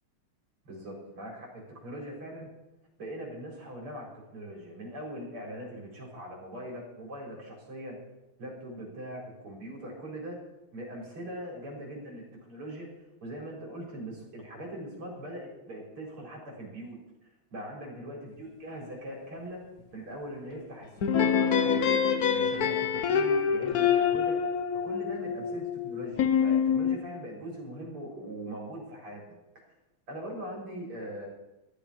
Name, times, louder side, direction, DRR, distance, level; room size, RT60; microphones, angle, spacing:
voice 1, 0.6-2.5 3.0-8.0 8.4-10.4 10.7-12.9 13.2-17.0 17.5-19.6 19.9-22.0 22.3-24.4 24.7-29.2 30.1-31.3, equal, 80° right, -2 dB, 4.9 m, -41 dB
sound 1, 21.0-27.0, left 7 dB, 55° left, 1.1 m, -26 dB
14.0 x 11.5 x 5.0 m, 0.98 s
omnidirectional pair, 2.4 m